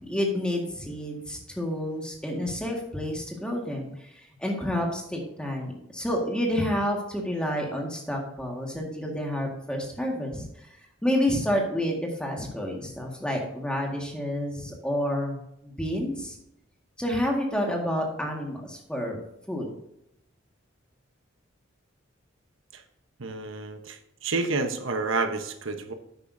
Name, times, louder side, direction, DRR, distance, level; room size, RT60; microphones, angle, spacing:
voice 1, 0.1-10.5 11.0-15.4 15.6-16.4 17.0-19.2 19.5-19.7, left 1 dB, 5° left, 0 dB, 1.8 m, -29 dB
voice 2, 23.2-25.9, right 3 dB, 80° right, 8 dB, 1.1 m, -29 dB
11.0 x 8.6 x 2.7 m, 0.81 s
head